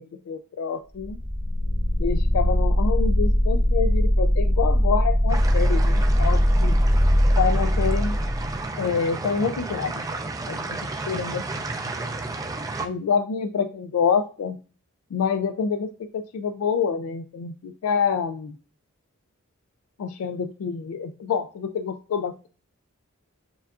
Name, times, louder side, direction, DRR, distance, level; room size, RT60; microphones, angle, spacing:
voice 1, 0.3-1.2 2.0-6.8 7.4-8.2 8.8-10.0 10.5-10.6 11.1-11.6 12.8-14.6 15.1-18.5 20.0-22.5, left 6 dB, 75° left, 9 dB, 0.3 m, -27 dB
sound 1, 1.0-8.7, equal, 75° right, 1.6 m, -20 dB
Water River MS, 5.3-12.9, right 3 dB, 15° right, 0.3 m, -32 dB
6.9 x 2.3 x 2.4 m, 0.37 s
head